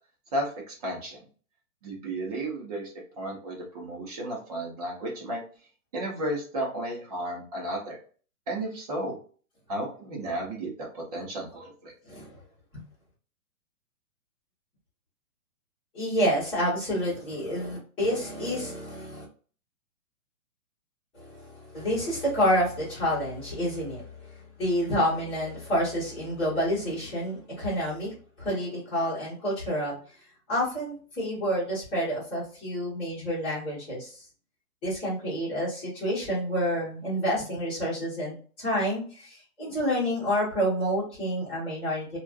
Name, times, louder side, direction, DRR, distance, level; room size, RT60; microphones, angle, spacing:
voice 1, 0.3-1.2 1.8-5.4 5.9-8.0 8.5-9.1 9.7-11.9, right 1 dB, 25° right, -3 dB, 0.8 m, -33 dB
voice 2, 12.1-12.4 12.7-12.8 15.9-19.2 21.1-30.0 30.5-34.2 34.8-42.2, equal, 10° left, -10 dB, 1.2 m, -29 dB
3.0 x 2.4 x 2.4 m, 0.41 s
hypercardioid pair, 165°, 44 cm